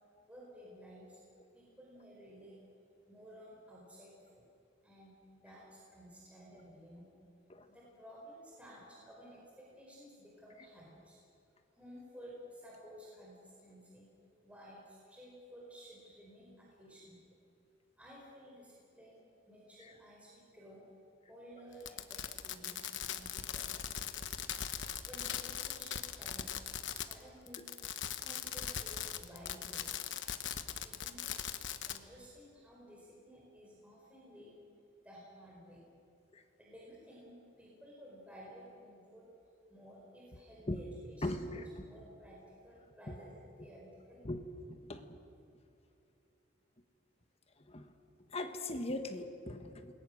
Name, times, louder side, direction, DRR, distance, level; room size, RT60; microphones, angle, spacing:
voice 1, 0.2-1.2 1.5-2.6 3.1-4.4 4.8-7.1 7.7-11.2 11.7-14.1 14.4-17.2 18.0-20.8 21.3-24.1 25.0-27.7 28.1-29.9 30.8-31.5 31.9-34.6 35.0-35.8 36.6-39.3 39.7-41.4 41.8-44.2, equal, 5° right, -5 dB, 4.8 m, -54 dB
Fireworks, 21.8-27.2 27.5-32.0, left 9 dB, 65° left, 1.1 m, -40 dB
voice 2, 41.2-41.7 43.1-43.2 44.2-45.2 47.7-47.9 48.3-49.9, left 1 dB, 30° left, 7 dB, 1.5 m, -39 dB
28.5 x 21.0 x 6.5 m, 2.7 s
head